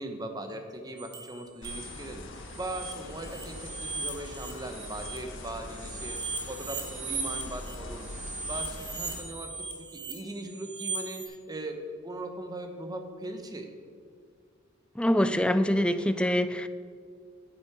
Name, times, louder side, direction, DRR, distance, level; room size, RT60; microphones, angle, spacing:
voice 1, 0.0-8.1 8.4-13.7, right 1 dB, 20° right, 5 dB, 0.9 m, -39 dB
sound 1, 1.0-2.1 2.4-5.2 5.7-11.3, right 3 dB, 55° right, 1.6 m, -38 dB
sound 2, 1.6-9.2, left 1 dB, 65° left, 1.3 m, -43 dB
voice 2, 15.0-16.7, equal, 5° left, 11 dB, 0.3 m, -25 dB
8.7 x 8.2 x 4.7 m, 2.1 s
head